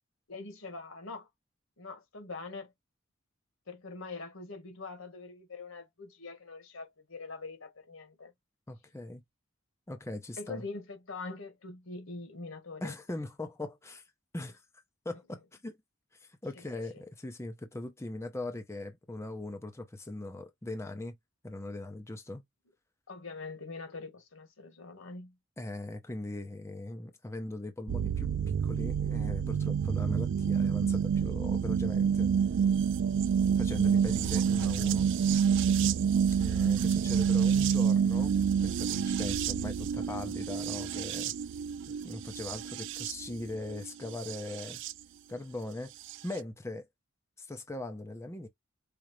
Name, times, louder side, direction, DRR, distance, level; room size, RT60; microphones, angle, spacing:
voice 1, 0.3-1.3 1.8-2.7 3.7-8.3 10.4-12.9 16.5-16.6 16.9-17.0 23.1-25.3, left 3 dB, 85° left, 1.3 m, -43 dB
voice 2, 8.7-9.2 9.9-10.6 12.8-14.0 14.3-14.6 15.0-15.8 16.1-21.2 21.4-22.4 25.6-32.3 33.6-35.1 36.4-38.3 38.6-41.3 42.0-44.8 45.3-45.9 46.2-46.9 47.4-48.5, left 2 dB, 15° left, 0.6 m, -40 dB
sound 1, 27.9-44.9 46.1-46.2, right 7 dB, 65° right, 0.3 m, -28 dB
5.0 x 2.0 x 3.0 m
head